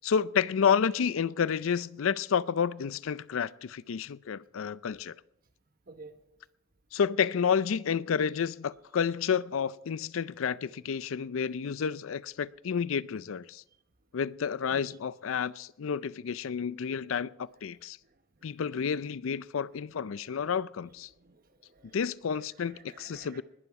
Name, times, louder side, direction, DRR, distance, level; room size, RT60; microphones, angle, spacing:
voice 1, 0.0-5.1 6.9-13.6 14.1-18.0 18.4-21.1 21.9-23.4, left 7 dB, 85° left, 0.4 m, -30 dB
voice 2, 5.9-6.2 14.7-14.9 21.2-22.0 22.6-23.4, right 3 dB, 45° right, 1.1 m, -52 dB
20.0 x 11.0 x 4.8 m
head